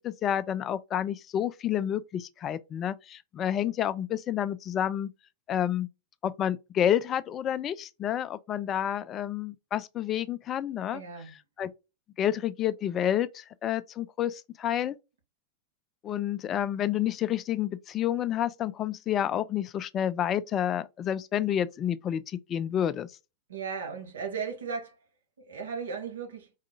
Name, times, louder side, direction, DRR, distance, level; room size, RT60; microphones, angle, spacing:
voice 1, 0.0-5.1 5.5-5.9 6.2-11.0 11.6-11.7 12.2-15.0 16.0-23.1, left 10 dB, 30° left, 0.4 m, -29 dB
voice 2, 10.9-11.3 23.5-24.9 25.5-26.5, right 6 dB, 65° right, 1.7 m, -36 dB
4.8 x 3.7 x 2.3 m
figure-of-eight pair, 90°, 0 cm